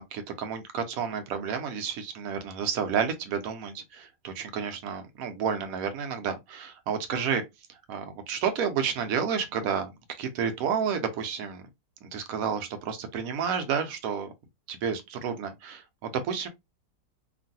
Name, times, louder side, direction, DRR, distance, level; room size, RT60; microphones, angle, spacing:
voice 1, 0.0-7.4 7.9-9.9 10.2-11.6 12.0-14.3 14.7-16.5, right 7 dB, 70° right, 0.9 m, -30 dB
3.0 x 2.5 x 2.6 m
omnidirectional pair, 1.9 m